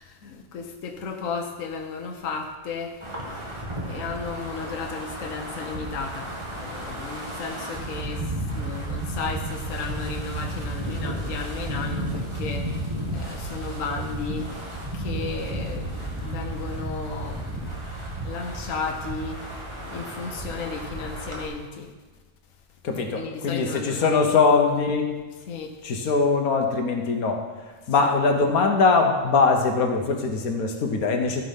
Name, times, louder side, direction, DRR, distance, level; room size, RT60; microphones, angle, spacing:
voice 1, 0.0-2.9 3.8-6.3 6.6-8.2 8.5-12.6 13.1-14.5 14.9-17.7 18.2-19.4 19.8-21.9 22.9-24.2 25.5-25.7, left 5 dB, 65° left, 3 dB, 1.3 m, -34 dB
Wind, 3.0-21.5, right 1 dB, 20° right, 1.9 m, -33 dB
voice 2, 22.8-25.1 25.8-27.4 27.9-31.4, left 4 dB, 85° left, 4 dB, 1.5 m, -22 dB
14.5 x 5.5 x 5.6 m, 1.3 s
omnidirectional pair, 1.5 m